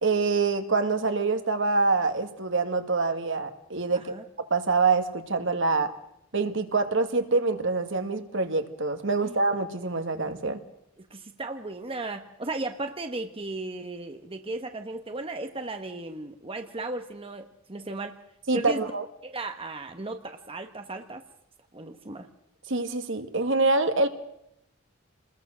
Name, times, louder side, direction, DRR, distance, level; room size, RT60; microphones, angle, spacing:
voice 1, 0.0-4.1 4.5-5.9 6.3-10.6 18.5-19.1 22.7-24.1, right 3 dB, 65° right, 8 dB, 1.8 m, -25 dB
voice 2, 11.1-18.2 18.5-18.9 19.2-21.2 21.7-22.3, right 2 dB, 25° right, 6 dB, 1.2 m, -35 dB
27.5 x 21.0 x 6.3 m, 0.81 s
head